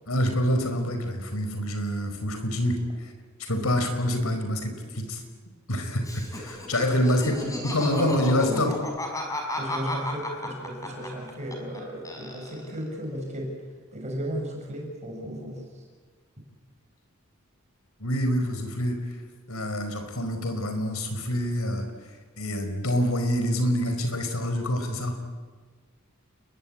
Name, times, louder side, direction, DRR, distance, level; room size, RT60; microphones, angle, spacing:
voice 1, 0.1-3.1 3.5-5.2 5.7-8.7 18.0-19.0 19.5-21.9 22.4-25.2, equal, 80° left, 7 dB, 4.8 m, -26 dB
Laughter, 6.0-11.8 12.0-12.8, left 1 dB, 15° left, 5.2 m, -34 dB
voice 2, 7.3-7.7 7.9-8.7 9.6-13.5 13.9-15.8, right 1 dB, 35° right, 0 dB, 6.7 m, -34 dB
29.5 x 22.0 x 8.7 m, 1.5 s
head